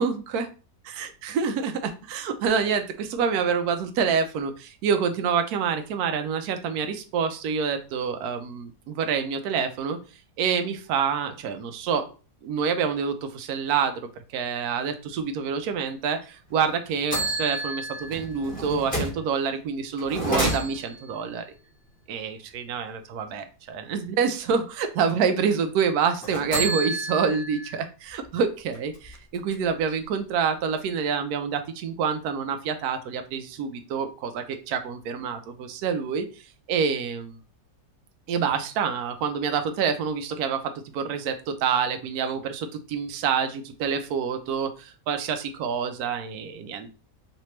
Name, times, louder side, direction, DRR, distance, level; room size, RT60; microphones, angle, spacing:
voice 1, 0.0-0.5 0.9-10.0 10.4-12.1 12.4-21.4 22.1-36.3 36.7-37.4 38.3-46.9, right 6 dB, 75° right, 7 dB, 1.1 m, -27 dB
sound 1, 16.5-16.6 17.1-19.2 20.0-21.1 26.2-27.8 28.2-28.3 28.7-29.8, right 1 dB, 5° left, 1.5 m, -30 dB
3.3 x 2.9 x 3.1 m, 0.34 s
omnidirectional pair, 1.7 m